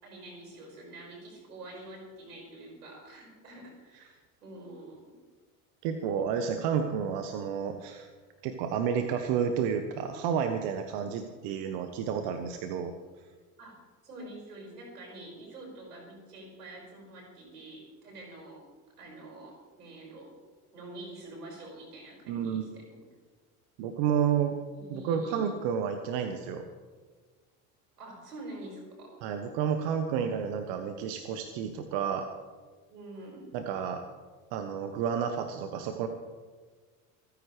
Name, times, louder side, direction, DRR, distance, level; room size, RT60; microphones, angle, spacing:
voice 1, 0.0-5.1 10.9-11.3 13.6-13.8 14.0-18.6 19.0-20.3 20.7-23.0 24.7-25.4 28.0-29.1 32.9-33.5, right 1 dB, 90° right, -1 dB, 5.7 m, -46 dB
voice 2, 5.8-8.1 8.4-12.9 22.3-22.6 23.8-24.6 24.9-26.7 29.2-32.3 33.5-34.0 34.5-36.1, right 7 dB, 60° right, 7 dB, 1.2 m, -30 dB
28.0 x 10.0 x 3.3 m, 1.4 s
hypercardioid pair, 70°, 45 cm